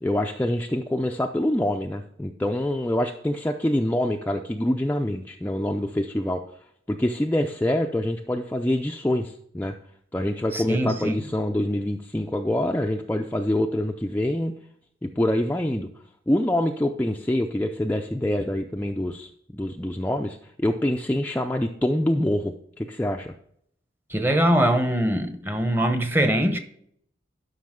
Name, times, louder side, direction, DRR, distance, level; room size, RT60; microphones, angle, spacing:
voice 1, 0.0-6.4 6.9-9.8 10.1-14.6 15.0-15.9 16.3-23.3, left 1 dB, 10° left, 0.4 m, -25 dB
voice 2, 10.5-11.1 24.1-26.6, right 1 dB, 10° right, 0.8 m, -22 dB
12.0 x 5.6 x 3.7 m
head